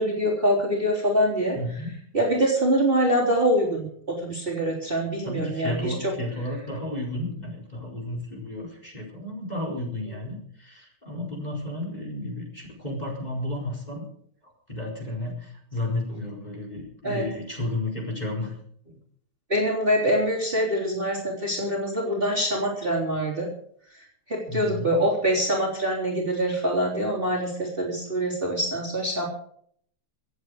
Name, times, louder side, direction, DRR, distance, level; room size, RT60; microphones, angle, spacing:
voice 1, 0.0-1.6 2.1-6.1 17.0-17.3 19.5-23.5 24.3-29.3, equal, 25° right, -2 dB, 3.7 m, -24 dB
voice 2, 1.5-1.9 5.2-14.0 14.7-18.5 18.8-19.0 24.5-25.0, left 1 dB, 20° left, -1 dB, 4.7 m, -32 dB
25.5 x 8.9 x 5.0 m, 0.62 s
omnidirectional pair, 2.4 m